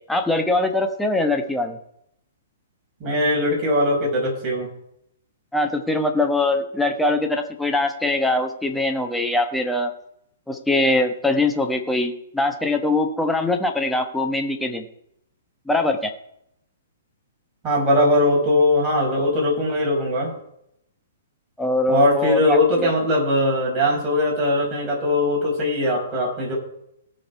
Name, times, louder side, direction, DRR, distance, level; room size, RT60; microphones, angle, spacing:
voice 1, 0.1-1.8 5.5-9.9 10.5-14.9 15.7-16.1 21.6-22.9, left 2 dB, 5° left, 4 dB, 1.2 m, -22 dB
voice 2, 3.0-4.7 17.6-20.3 21.9-26.5, left 1 dB, 25° right, -3 dB, 5.6 m, -20 dB
18.0 x 6.5 x 4.7 m, 0.76 s
hypercardioid pair, 140°, 0 cm